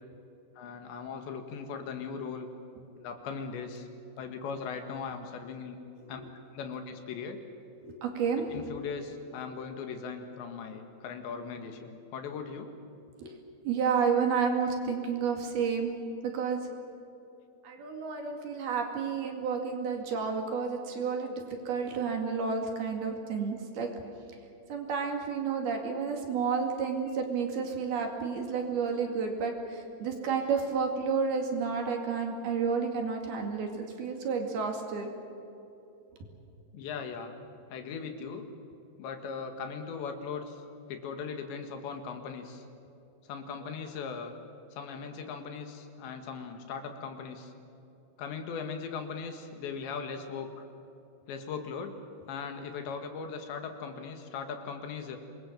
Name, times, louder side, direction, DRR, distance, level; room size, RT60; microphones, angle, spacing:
voice 1, 0.6-2.5 3.0-3.9 4.2-5.8 6.1-6.2 6.5-7.4 8.5-12.7 36.7-37.4 37.7-38.5 39.0-40.6 40.9-42.6 43.3-44.4 44.7-47.5 48.2-50.7 51.3-51.9 52.3-55.2, left 5 dB, 75° left, 5 dB, 4.0 m, -39 dB
voice 2, 7.8-8.5 13.2-13.3 13.6-15.9 16.2-16.6 17.6-21.3 21.7-23.9 24.7-35.1, right 5 dB, 60° right, 3 dB, 4.0 m, -31 dB
26.5 x 21.5 x 7.4 m, 2.9 s
omnidirectional pair, 5.4 m